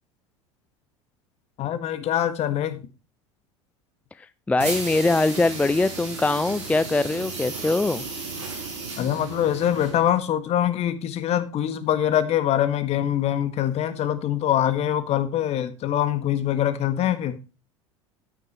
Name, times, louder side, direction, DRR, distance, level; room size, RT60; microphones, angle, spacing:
voice 1, 1.6-2.8 9.0-17.4, left 11 dB, 45° left, 11 dB, 1.6 m, -24 dB
voice 2, 4.2-8.0, left 2 dB, 10° left, 15 dB, 0.4 m, -22 dB
sound 1, 4.6-10.2, right 4 dB, 75° right, 4.4 m, -34 dB
9.4 x 9.1 x 4.3 m, 0.30 s
hypercardioid pair, 75°, 15 cm